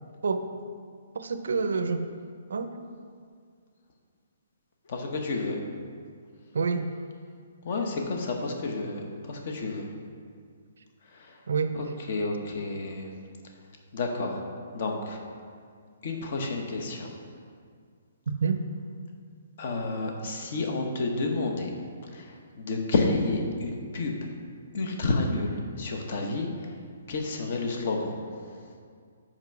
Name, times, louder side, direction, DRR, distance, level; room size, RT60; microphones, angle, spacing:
voice 1, 1.2-2.0 2.5-2.7 6.5-6.9 11.5-11.7 18.4-18.6, right 5 dB, 85° right, 9 dB, 0.5 m, -27 dB
voice 2, 4.9-5.6 7.6-9.8 11.1-11.4 11.7-13.1 13.9-14.4 14.7-15.2 16.0-17.1 19.6-21.7 22.1-24.2 24.7-26.7 27.1-28.2, left 3 dB, 45° left, 2 dB, 1.0 m, -30 dB
5.9 x 5.2 x 5.9 m, 2.1 s
hypercardioid pair, 170°, 0 cm